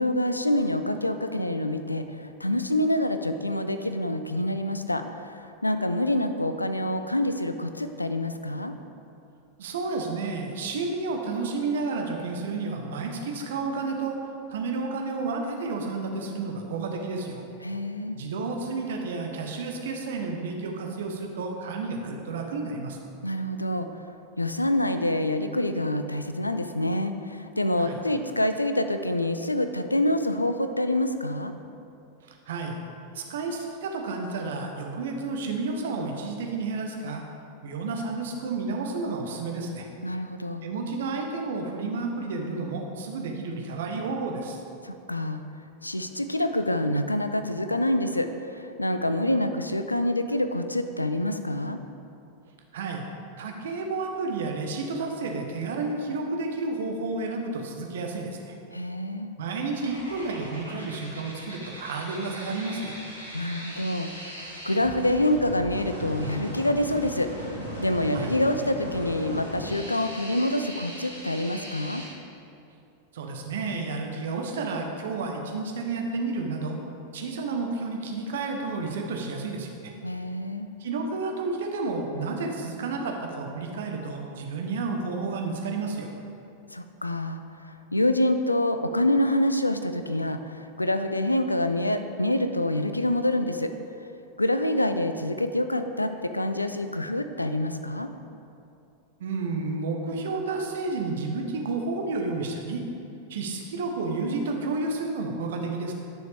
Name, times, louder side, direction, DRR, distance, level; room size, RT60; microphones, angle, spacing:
voice 1, 0.0-8.7 17.6-18.2 23.2-23.9 24.4-31.5 40.0-40.6 44.8-45.4 45.8-51.8 58.7-59.3 63.3-67.3 67.8-72.0 80.0-80.7 86.7-87.4 87.9-93.7 94.4-98.1, left 1 dB, 85° left, 8 dB, 0.4 m, -26 dB
voice 2, 9.6-14.2 14.5-17.4 18.1-23.0 27.8-28.0 32.3-32.8 33.1-37.2 37.6-39.9 40.6-44.6 52.7-53.0 53.4-58.5 59.4-63.0 68.1-68.4 73.1-76.8 77.1-79.7 80.8-86.1 99.2-102.8 103.3-105.9, right 3 dB, 60° right, 2 dB, 1.0 m, -31 dB
sound 1, 59.8-72.1, equal, 90° right, 1.6 m, -38 dB
9.9 x 6.2 x 3.4 m, 2.6 s
figure-of-eight pair, 90°, 0 cm